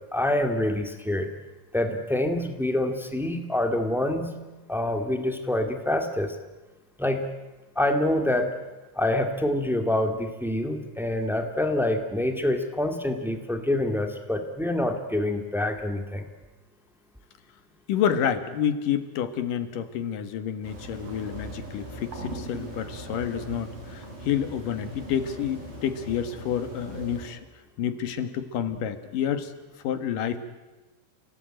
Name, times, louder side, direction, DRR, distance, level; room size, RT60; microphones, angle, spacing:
voice 1, 0.1-1.3 1.7-4.3 4.7-6.3 7.0-7.2 7.7-8.5 8.9-16.2, left 1 dB, ahead, 5 dB, 1.1 m, -26 dB
voice 2, 17.9-27.4 27.8-29.5 29.8-30.4, left 8 dB, 70° left, 10 dB, 3.0 m, -29 dB
sound 1, 20.6-27.3, right 1 dB, 70° right, 9.5 m, -40 dB
30.0 x 18.0 x 9.1 m, 1.2 s
omnidirectional pair, 4.1 m